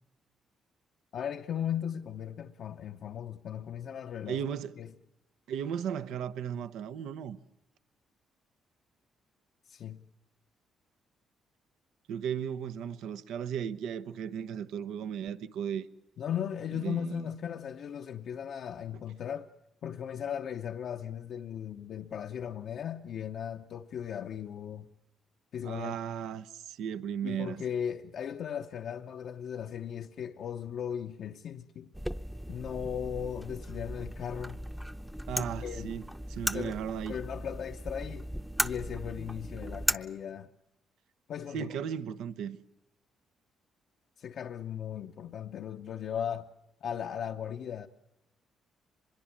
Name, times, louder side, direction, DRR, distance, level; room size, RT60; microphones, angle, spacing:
voice 1, 1.1-4.4 4.8-4.9 9.6-10.0 16.2-19.5 19.8-24.9 25.5-26.0 27.2-31.9 32.5-34.6 35.4-35.9 36.5-36.8 37.1-38.3 38.6-40.5 41.3-41.8 44.2-46.5 46.8-47.9, left 9 dB, 65° left, 0.8 m, -37 dB
voice 2, 4.3-4.8 5.5-7.4 12.1-15.9 16.8-17.2 25.6-27.6 35.3-37.2 41.5-42.6, right 8 dB, 85° right, 0.9 m, -36 dB
sound 1, 31.9-40.0, equal, 5° right, 0.8 m, -37 dB
24.0 x 22.0 x 7.4 m
cardioid pair, 90°, 0 cm